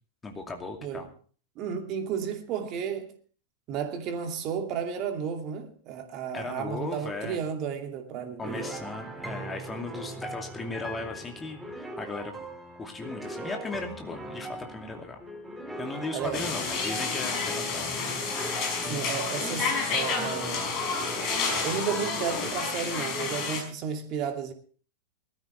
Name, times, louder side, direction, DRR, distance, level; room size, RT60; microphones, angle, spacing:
voice 1, 0.2-1.1 6.3-7.4 8.4-12.3 12.8-15.2 15.8-17.9, left 3 dB, 15° left, 2.5 m, -37 dB
voice 2, 1.6-3.1 3.7-8.6 16.1-16.5 18.9-20.7 21.6-24.5, right 7 dB, 40° right, 2.5 m, -33 dB
sound 1, 8.4-22.5, right 1 dB, 5° right, 2.6 m, -40 dB
sound 2, 16.3-23.6, left 5 dB, 40° left, 5.2 m, -30 dB
20.5 x 13.5 x 3.4 m
figure-of-eight pair, 90°, 0 cm